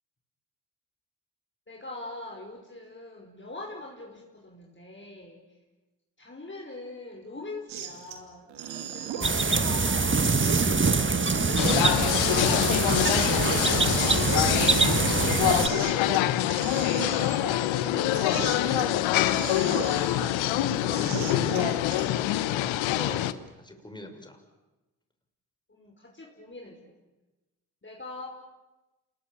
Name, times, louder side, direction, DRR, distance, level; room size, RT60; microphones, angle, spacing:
voice 1, 1.7-5.4 6.2-8.5 8.9-10.4 11.2-15.8 25.7-26.9 27.8-28.3, left 2 dB, 25° left, 0 dB, 5.1 m, -42 dB
sound 1, 7.7-8.2 8.5-18.9 19.2-22.0, right 7 dB, 80° right, 2.9 m, -37 dB
sound 2, 9.2-15.7, right 4 dB, 25° right, 1.7 m, -24 dB
sound 3, 11.6-23.3, left 14 dB, 85° left, 1.1 m, -25 dB
voice 2, 17.9-24.4, left 1 dB, 10° left, 5 dB, 6.3 m, -43 dB
28.0 x 21.0 x 8.8 m, 1.1 s
supercardioid pair, 50°, 45 cm